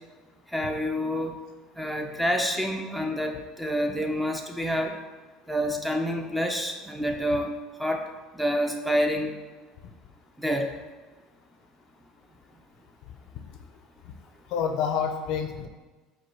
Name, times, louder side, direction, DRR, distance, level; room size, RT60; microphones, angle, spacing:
voice 1, 0.5-1.4 1.8-5.0 5.5-7.5 7.8-8.1 8.3-9.3 10.4-10.7, equal, 5° right, 3 dB, 0.5 m, -27 dB
voice 2, 13.1-13.6 14.5-15.7, left 7 dB, 65° left, 5 dB, 0.4 m, -29 dB
4.7 x 2.2 x 4.3 m, 1.3 s
supercardioid pair, 90°, 0 cm